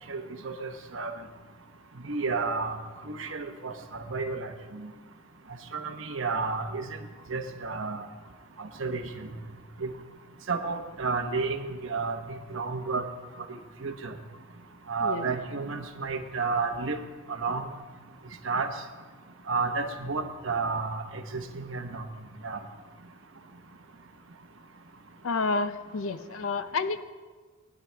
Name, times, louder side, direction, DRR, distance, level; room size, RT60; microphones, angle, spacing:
voice 1, 0.1-1.1 2.0-2.8 3.1-4.5 5.7-6.9 7.3-8.1 8.6-9.0 9.8-9.9 10.5-13.0 13.8-14.1 14.9-17.0 17.3-17.7 18.4-18.7 19.5-22.1 22.4-22.6, right 4 dB, 70° right, 5 dB, 1.0 m, -31 dB
voice 2, 25.2-27.0, left 3 dB, 80° left, 11 dB, 0.6 m, -29 dB
19.0 x 10.0 x 3.4 m, 1.4 s
head